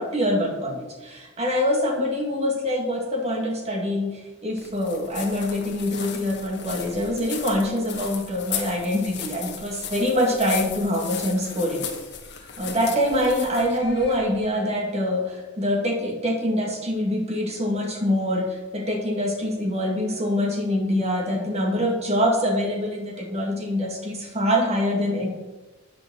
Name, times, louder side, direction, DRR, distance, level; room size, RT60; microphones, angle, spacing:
voice 1, 0.0-11.9 12.6-25.3, left 1 dB, 30° right, 1 dB, 2.1 m, -25 dB
sound 1, 4.6-14.5, left 7 dB, 55° left, 1.5 m, -36 dB
8.8 x 6.2 x 7.5 m, 1.2 s
head